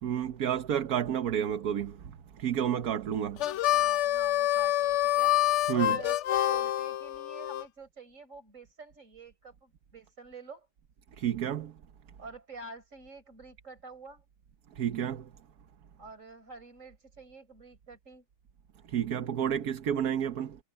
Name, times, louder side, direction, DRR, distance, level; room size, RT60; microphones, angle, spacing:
voice 1, 0.0-3.4 5.7-6.0 11.2-11.7 14.8-15.3 18.9-20.6, right 9 dB, 70° right, 1.5 m, -30 dB
Harmonica, 3.4-7.6, left 13 dB, 65° left, 0.8 m, -27 dB
voice 2, 3.5-5.3 5.7-10.7 12.2-14.2 16.0-18.2, right 3 dB, 50° right, 4.8 m, -48 dB
omnidirectional pair, 1.7 m